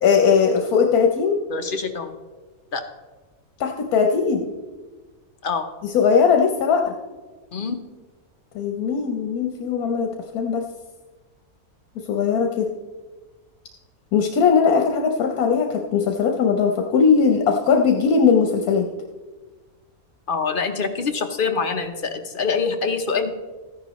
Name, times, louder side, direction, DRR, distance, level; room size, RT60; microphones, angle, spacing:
voice 1, 0.0-1.4 3.6-4.5 5.9-6.9 8.5-10.6 12.1-12.7 14.1-18.8, left 6 dB, 80° left, 3 dB, 1.3 m, -19 dB
voice 2, 1.5-2.2 2.7-2.8 5.4-5.7 7.5-7.8 20.3-23.3, left 5 dB, 45° left, 6 dB, 0.8 m, -25 dB
14.0 x 10.5 x 3.0 m, 1.3 s
omnidirectional pair, 1.6 m